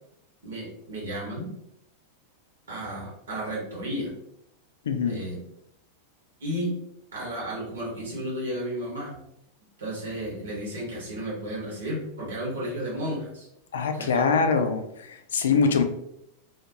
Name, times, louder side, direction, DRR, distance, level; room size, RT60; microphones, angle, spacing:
voice 1, 0.4-1.5 2.7-4.1 5.1-5.4 6.4-6.7 7.1-9.1 9.8-13.5 13.9-14.7 15.5-15.8, equal, 65° right, -4 dB, 1.1 m, -33 dB
voice 2, 4.9-5.2 13.7-14.8 15.1-15.8, left 5 dB, 65° left, 6 dB, 0.3 m, -23 dB
2.4 x 2.4 x 2.8 m, 0.79 s
figure-of-eight pair, 90°, 0 cm